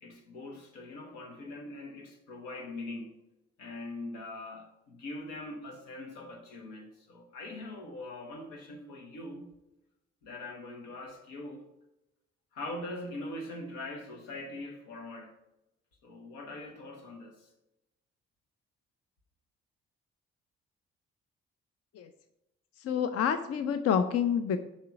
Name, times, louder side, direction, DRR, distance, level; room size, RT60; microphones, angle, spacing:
voice 1, 0.0-3.2 3.6-9.5 10.2-11.7 12.5-15.3 16.0-17.5, left 2 dB, 80° left, 1.1 m, -42 dB
voice 2, 22.8-24.6, left 8 dB, 50° left, 0.5 m, -28 dB
6.6 x 3.2 x 5.7 m
hypercardioid pair, 45°, 31 cm